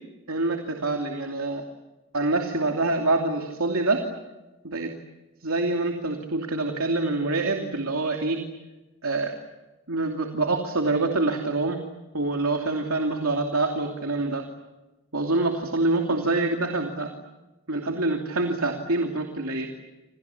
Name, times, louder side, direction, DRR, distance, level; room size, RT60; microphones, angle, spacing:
voice 1, 0.3-1.6 2.1-4.0 4.6-4.9 5.4-8.4 9.0-9.3 9.9-11.8 12.1-14.4 15.1-17.1 17.7-19.7, right 2 dB, 75° right, 3 dB, 2.8 m, -26 dB
28.5 x 28.0 x 7.2 m, 1.1 s
head